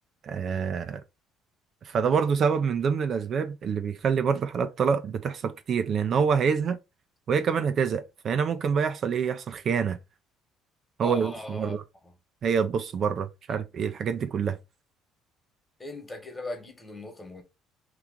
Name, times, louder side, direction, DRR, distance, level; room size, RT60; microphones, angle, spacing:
voice 1, 0.2-1.0 1.8-6.8 7.3-10.0 11.0-11.8 12.4-14.6, right 6 dB, 50° right, 0.4 m, -26 dB
voice 2, 11.0-11.8 12.0-12.1 13.5-13.6 15.8-17.4, left 2 dB, 15° left, 1.2 m, -39 dB
3.0 x 2.4 x 3.6 m
supercardioid pair, 80°, 0 cm